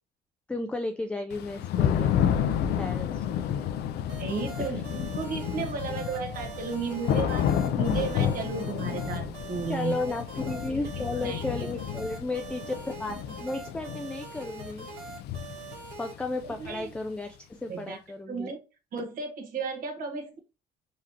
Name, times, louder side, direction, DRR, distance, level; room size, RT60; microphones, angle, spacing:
voice 1, 0.5-2.2 2.8-3.2 4.7-4.8 9.7-15.1 16.0-18.5, left 2 dB, 5° left, 0.3 m, -34 dB
Thunder / Rain, 1.3-17.1, left 9 dB, 75° left, 0.5 m, -31 dB
sound 1, 4.1-16.1, right 4 dB, 85° right, 1.7 m, -43 dB
voice 2, 4.2-10.0 10.9-11.4 16.4-16.9 17.7-18.0 18.3-18.6 18.9-20.4, right 5 dB, 55° right, 1.3 m, -34 dB
3.9 x 3.1 x 2.8 m
cardioid pair, 110°, 17 cm